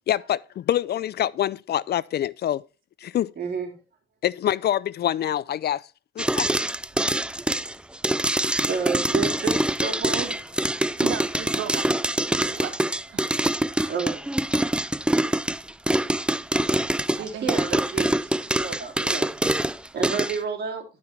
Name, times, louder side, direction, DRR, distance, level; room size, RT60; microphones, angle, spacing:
voice 1, 0.1-2.6 3.0-3.3 4.2-5.9 6.2-6.5, left 11 dB, 55° left, 0.4 m, -25 dB
voice 2, 3.4-3.7 8.5-10.4 13.9-14.2 17.1-18.2 18.6-19.3 19.9-20.8, right 5 dB, 55° right, 3.5 m, -30 dB
sound 1, 6.2-20.4, right 1 dB, 5° right, 0.4 m, -24 dB
voice 3, 11.0-11.9 12.3-12.8 13.1-13.4 17.2-17.8 18.2-18.3, right 9 dB, 80° right, 1.4 m, -35 dB
11.5 x 5.9 x 4.2 m
cardioid pair, 90°, 20 cm